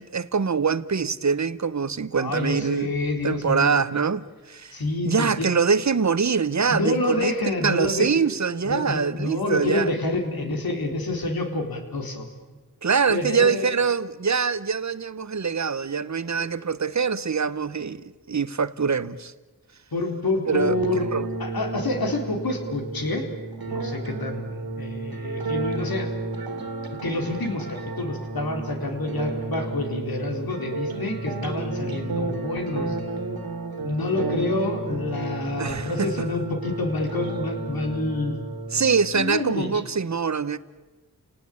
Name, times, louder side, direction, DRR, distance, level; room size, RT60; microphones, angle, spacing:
voice 1, 0.0-2.9 3.2-4.8 5.1-7.4 7.6-9.9 12.8-19.3 20.5-20.8 21.1-21.3 35.6-36.3 38.7-40.6, right 5 dB, 50° right, 1.1 m, -24 dB
voice 2, 2.2-3.8 4.7-5.6 6.7-8.1 8.6-12.3 13.1-13.7 16.3-16.4 19.9-21.1 21.4-23.3 23.7-26.1 27.0-33.0 33.8-38.4 39.1-39.7, left 2 dB, 75° left, 4.1 m, -28 dB
sound 1, 20.5-39.5, right 3 dB, 80° right, 2.7 m, -32 dB
30.0 x 18.5 x 8.6 m
cardioid pair, 45°, 36 cm